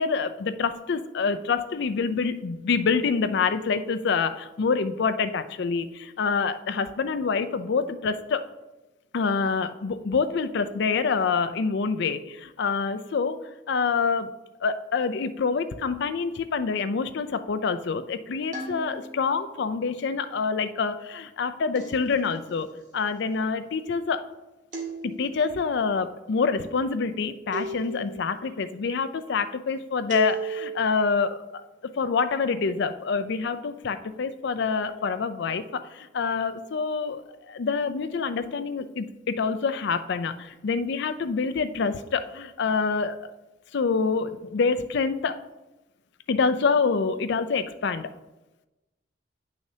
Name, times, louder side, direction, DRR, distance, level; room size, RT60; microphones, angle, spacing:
voice 1, 0.0-8.5 9.1-13.4 13.7-14.3 14.6-22.7 22.9-24.2 25.0-31.6 31.9-43.2 43.7-45.4 46.3-48.1, left 5 dB, 65° left, 11 dB, 0.5 m, -26 dB
sound 1, 18.5-19.4 21.7-22.6 24.7-25.6 27.5-28.4 30.1-31.0, right 5 dB, 45° right, 1.6 m, -35 dB
9.2 x 6.4 x 2.8 m, 1.0 s
head